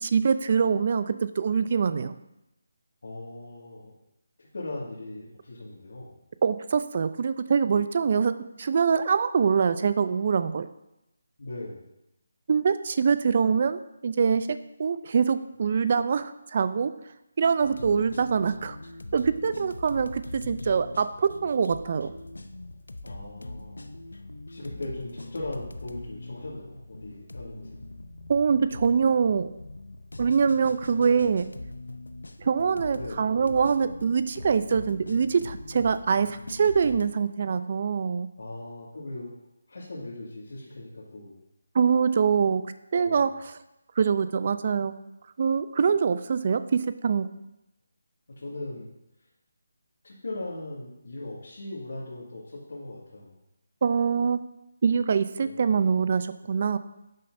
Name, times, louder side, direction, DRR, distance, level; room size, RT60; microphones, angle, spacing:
voice 1, 0.0-2.1 6.4-10.7 12.5-16.9 17.4-18.8 19.1-22.1 28.3-29.5 30.2-31.5 32.4-38.3 41.7-42.6 42.9-43.3 44.0-44.9 45.4-47.3 53.8-54.4 54.8-56.8, right 6 dB, 45° right, 12 dB, 0.5 m, -24 dB
voice 2, 3.0-3.9 4.5-6.2 11.4-11.9 23.0-23.9 24.5-27.8 32.9-33.3 38.4-39.3 39.7-41.4 43.0-43.3 48.3-48.9 50.0-53.4 55.4-55.6, left 2 dB, 65° left, -6 dB, 2.2 m, -39 dB
sound 1, 17.6-37.1, left 2 dB, 80° left, 0.7 m, -42 dB
11.0 x 6.6 x 2.7 m, 0.88 s
figure-of-eight pair, 155°, 0 cm